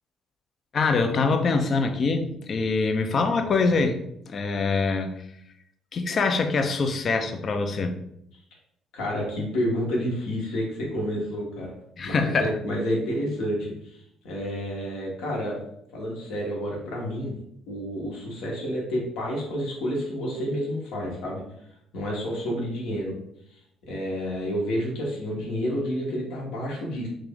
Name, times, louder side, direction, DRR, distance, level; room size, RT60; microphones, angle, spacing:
voice 1, 0.7-4.0 4.3-5.1 5.9-8.0 12.0-12.5, left 4 dB, 50° left, 6 dB, 0.5 m, -24 dB
voice 2, 8.9-11.7 12.0-14.0 14.2-15.6 15.9-17.3 17.7-21.4 21.9-23.1 23.9-27.1, equal, 70° left, -2 dB, 1.1 m, -29 dB
3.2 x 2.5 x 3.5 m, 0.75 s
hypercardioid pair, 50°, 0 cm